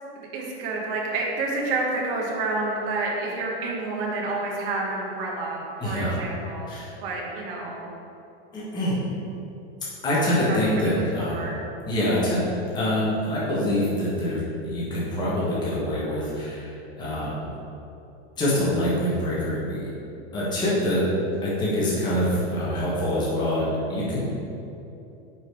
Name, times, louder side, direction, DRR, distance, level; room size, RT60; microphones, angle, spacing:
voice 1, 0.1-6.7 7.0-7.9 10.5-11.0 11.3-11.6, right 3 dB, 55° right, -2 dB, 1.4 m, -29 dB
voice 2, 5.8-6.2 6.7-6.9 8.5-9.0 10.0-11.5 11.9-12.4 12.7-17.5 18.4-19.8 20.3-21.0 21.4-24.2, left 1 dB, 15° left, -8 dB, 1.2 m, -25 dB
5.7 x 4.1 x 4.7 m, 2.8 s
supercardioid pair, 155°, 34 cm